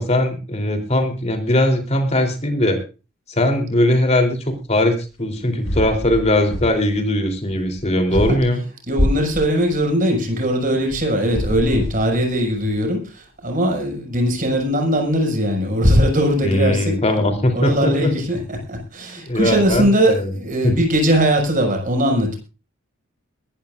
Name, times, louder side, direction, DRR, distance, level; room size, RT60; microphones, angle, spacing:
voice 1, 0.0-2.8 3.3-8.6 16.4-18.1 19.2-20.3 20.6-20.8, left 1 dB, 35° left, 5 dB, 3.5 m, -20 dB
sound 1, 5.2-5.3 5.6-7.0 7.3-8.4 11.2-12.7, equal, 75° left, 7.4 m, -29 dB
voice 2, 8.9-16.9 17.5-22.4, equal, 40° right, 2 dB, 6.3 m, -19 dB
22.0 x 14.0 x 2.6 m, 0.32 s
head